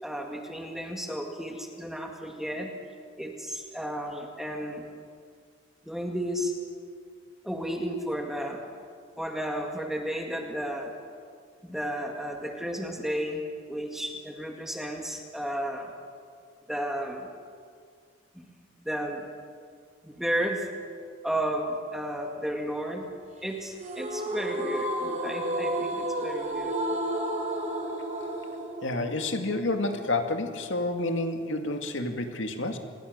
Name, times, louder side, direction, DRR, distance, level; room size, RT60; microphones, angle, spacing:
voice 1, 0.0-2.7 3.2-4.9 5.9-6.5 7.4-8.6 9.2-10.9 11.6-15.9 16.7-17.3 18.4-18.5 18.8-19.3 20.0-20.7 21.2-23.0 23.4-27.0, equal, ahead, 2 dB, 2.0 m, -33 dB
sound 1, 23.8-30.8, right 1 dB, 40° right, 3.5 m, -32 dB
voice 2, 28.8-32.8, left 2 dB, 75° left, 5 dB, 2.2 m, -29 dB
28.0 x 21.0 x 6.7 m, 2.1 s
head